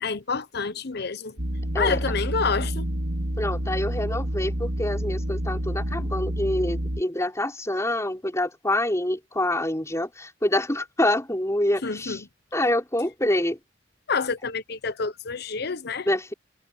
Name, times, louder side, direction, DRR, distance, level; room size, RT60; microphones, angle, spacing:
voice 1, 0.0-1.3 1.8-2.8 11.8-12.2 14.1-16.1, left 4 dB, 60° left, 0.9 m, -28 dB
sound 1, 1.4-7.0, equal, 85° right, 2.3 m, -28 dB
voice 2, 3.4-12.2 12.5-13.6 16.0-16.3, left 1 dB, 15° left, 4.8 m, -26 dB
head